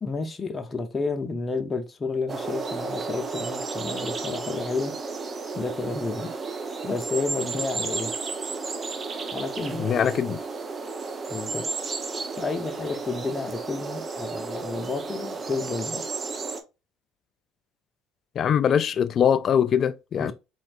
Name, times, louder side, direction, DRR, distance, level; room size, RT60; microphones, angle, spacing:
voice 1, 0.0-4.9 5.5-6.3 6.8-8.1 9.3-9.8 11.3-11.6 12.4-16.0 20.2-20.3, left 3 dB, 30° left, 0.7 m, -31 dB
sound 1, 2.3-16.6, right 4 dB, 35° right, 0.8 m, -33 dB
voice 2, 9.8-10.4 18.4-20.3, left 8 dB, 50° left, 0.4 m, -22 dB
4.4 x 3.1 x 2.5 m
hypercardioid pair, 65°, 0 cm